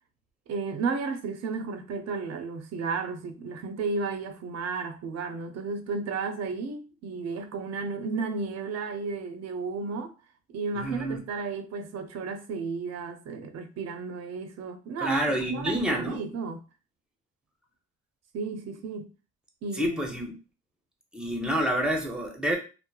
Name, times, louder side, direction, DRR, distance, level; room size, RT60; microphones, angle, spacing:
voice 1, 0.5-10.1 10.5-16.6 18.3-19.1 19.6-20.0, right 4 dB, 60° right, 0.5 m, -33 dB
voice 2, 10.7-11.2 15.0-16.2 19.7-20.4 21.1-22.6, equal, 5° right, 0.7 m, -28 dB
2.9 x 2.0 x 2.3 m
cardioid pair, 90°, 30 cm